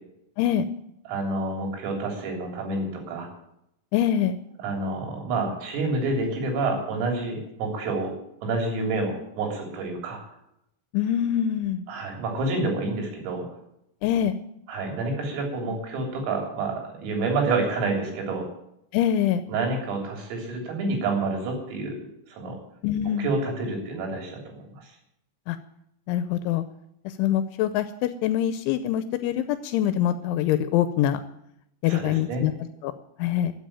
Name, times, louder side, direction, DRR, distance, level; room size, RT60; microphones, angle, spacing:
voice 1, 1.1-3.3 4.6-8.1 8.4-10.2 11.9-13.5 14.7-18.5 19.5-22.0 22.3-22.6 23.2-24.9 31.8-32.4, right 3 dB, 80° right, 1 dB, 6.0 m, -28 dB
voice 2, 3.9-4.4 10.9-11.8 14.0-14.4 18.9-19.4 22.8-23.3 25.5-25.6 26.1-26.6 27.1-31.2 31.8-32.5 32.8-32.9 33.2-33.5, left 11 dB, 80° left, 11 dB, 2.8 m, -24 dB
14.5 x 7.7 x 8.8 m, 0.79 s
omnidirectional pair, 5.9 m